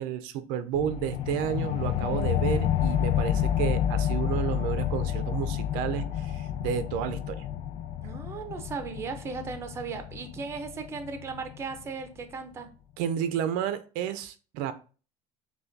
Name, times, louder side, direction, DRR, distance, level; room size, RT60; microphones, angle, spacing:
voice 1, 0.0-7.4 13.0-14.7, right 9 dB, 75° right, 0.4 m, -31 dB
sound 1, 0.7-11.8, left 10 dB, 50° left, 0.4 m, -30 dB
voice 2, 8.0-12.7, right 5 dB, 20° right, 0.5 m, -37 dB
5.6 x 2.2 x 2.5 m
cardioid pair, 160°, 14 cm